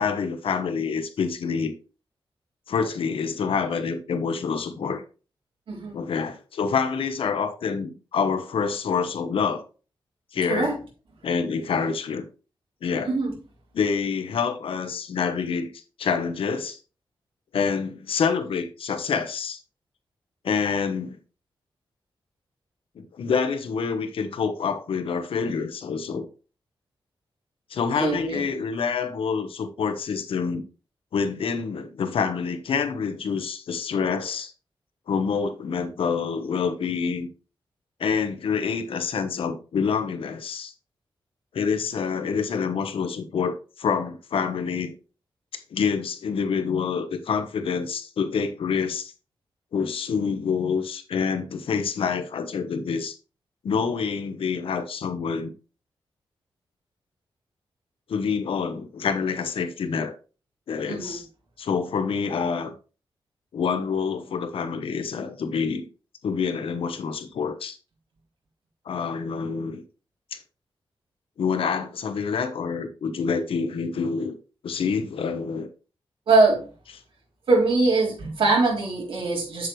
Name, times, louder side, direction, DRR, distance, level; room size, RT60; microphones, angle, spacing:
voice 1, 0.0-1.7 2.7-5.0 5.9-9.6 10.3-10.7 11.2-12.3 12.8-13.1 13.7-15.7 16.0-16.8 17.5-19.6 20.4-21.2 23.0-26.3 27.7-30.6 31.1-34.5 35.1-37.3 38.0-40.7 41.5-45.0 45.7-49.1 49.7-53.2 53.6-55.5 58.1-60.1 60.7-61.2 61.6-62.7 63.5-65.8 66.2-67.8 68.9-69.8 70.3-70.4 71.4-74.3 74.6-75.7, left 6 dB, 80° left, 1.1 m, -27 dB
voice 2, 13.0-13.4 27.9-28.4 60.9-61.2 76.3-76.7 77.5-79.7, right 3 dB, 70° right, 3.6 m, -22 dB
7.8 x 7.5 x 3.2 m
wide cardioid pair, 135°, 9 cm